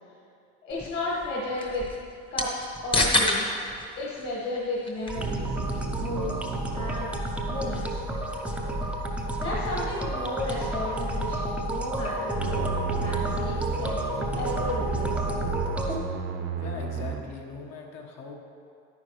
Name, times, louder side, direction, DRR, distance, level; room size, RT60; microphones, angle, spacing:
voice 1, 0.6-1.9 2.3-3.6 4.0-5.5 6.0-7.1 7.5-8.0 9.4-12.7 13.0-15.3, left 2 dB, 35° left, -7 dB, 1.6 m, -33 dB
sound 1, 0.7-11.4, left 1 dB, 15° left, 1.0 m, -33 dB
sound 2, 5.1-16.0, right 1 dB, 5° right, 0.6 m, -31 dB
sound 3, 5.1-7.1 12.3-17.2, right 5 dB, 40° right, 0.7 m, -33 dB
voice 2, 16.6-18.3, left 4 dB, 50° left, 1 dB, 1.4 m, -40 dB
10.5 x 9.3 x 3.2 m, 2.5 s
cardioid pair, 145°, 33 cm